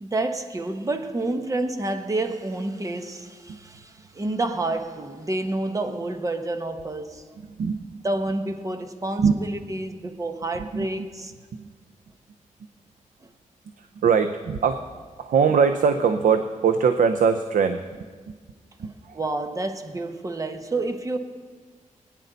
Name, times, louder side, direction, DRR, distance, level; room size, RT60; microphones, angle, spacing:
voice 1, 0.0-7.4 8.0-11.3 13.2-13.3 18.8-21.2, right 2 dB, 25° right, 1.0 m, -29 dB
voice 2, 7.4-8.0 9.2-9.4 10.6-11.1 11.5-11.7 13.8-14.8 15.2-18.4 18.8-19.2, right 6 dB, 85° right, 0.6 m, -22 dB
21.0 x 9.8 x 4.0 m
wide cardioid pair, 120°, 13 cm